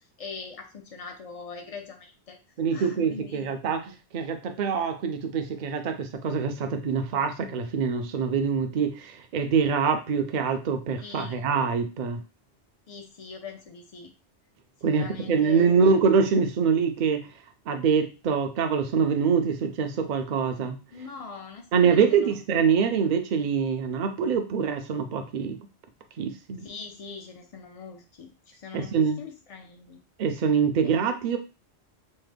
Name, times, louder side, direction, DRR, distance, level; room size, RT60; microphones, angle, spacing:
voice 1, 0.2-2.4 2.7-3.5 11.0-11.5 12.9-14.1 14.8-15.9 20.9-22.4 26.6-30.0 30.8-31.0, left 5 dB, 55° left, 4 dB, 0.4 m, -42 dB
voice 2, 2.6-12.2 14.8-17.3 17.7-20.8 21.7-25.6 26.2-26.7 28.7-29.2 30.2-31.4, right 6 dB, 55° right, 6 dB, 0.5 m, -25 dB
3.2 x 2.1 x 3.3 m, 0.32 s
omnidirectional pair, 1.2 m